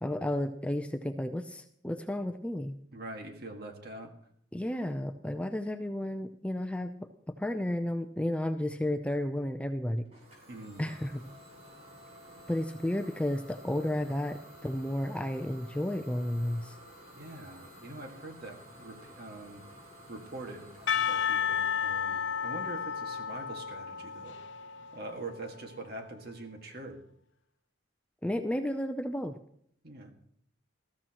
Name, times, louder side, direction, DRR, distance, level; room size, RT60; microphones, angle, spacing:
voice 1, 0.0-2.8 4.5-7.1 7.4-10.1 10.8-11.2 12.5-16.8 28.2-29.3, left 1 dB, 5° left, 7 dB, 0.5 m, -32 dB
voice 2, 2.9-4.1 10.5-10.8 17.2-19.6 20.1-20.7 21.1-24.4 24.9-27.0 29.8-30.1, right 2 dB, 55° right, 4 dB, 1.9 m, -43 dB
Idling / Domestic sounds home sounds, 10.1-25.6, equal, 35° right, 5.3 m, -53 dB
Percussion / Church bell, 20.9-25.6, left 8 dB, 70° left, 0.6 m, -32 dB
20.0 x 14.0 x 3.0 m, 0.66 s
head